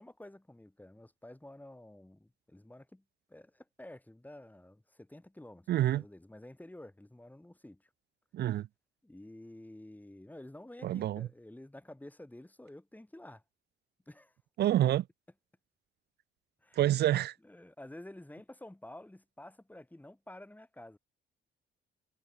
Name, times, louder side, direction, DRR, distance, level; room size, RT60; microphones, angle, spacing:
voice 1, 0.0-3.0 3.3-7.9 9.0-13.4 14.1-14.3 16.6-17.0 17.4-21.0, left 1 dB, 10° left, 7.9 m, -51 dB
voice 2, 5.7-6.0 8.3-8.7 10.8-11.3 14.6-15.0 16.8-17.3, right 13 dB, 55° right, 0.4 m, -27 dB
cardioid pair, 90°, 20 cm